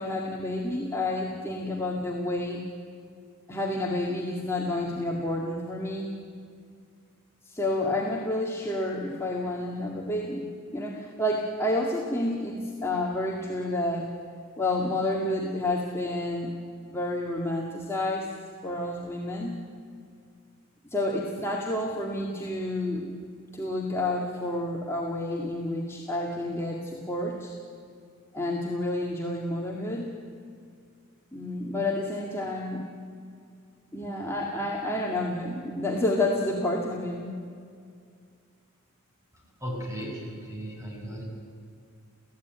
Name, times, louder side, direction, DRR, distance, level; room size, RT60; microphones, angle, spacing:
voice 1, 0.0-2.6 3.5-6.1 7.4-10.4 10.7-14.1 14.6-16.6 16.9-18.3 18.6-19.6 20.8-23.1 23.5-27.5 28.3-30.2 31.3-32.8 33.9-37.3, left 1 dB, 10° left, -3 dB, 2.2 m, -29 dB
voice 2, 39.3-41.2, equal, 15° right, -2 dB, 7.3 m, -36 dB
29.5 x 16.0 x 9.5 m, 2.3 s
head